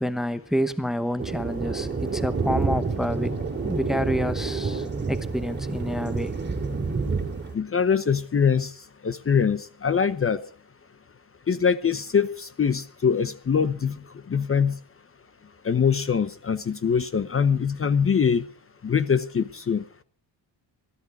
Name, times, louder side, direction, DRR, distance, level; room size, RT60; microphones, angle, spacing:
voice 1, 0.0-3.3 3.6-6.4, equal, ahead, 0.9 m, -28 dB
Thunder, 1.2-7.5, right 4 dB, 25° right, 3.0 m, -28 dB
voice 2, 7.5-8.7 9.0-10.4 11.5-13.9 14.3-14.8 15.6-18.4 18.8-19.8, left 6 dB, 30° left, 0.9 m, -23 dB
22.0 x 13.5 x 4.8 m
cardioid pair, 130°, 45 cm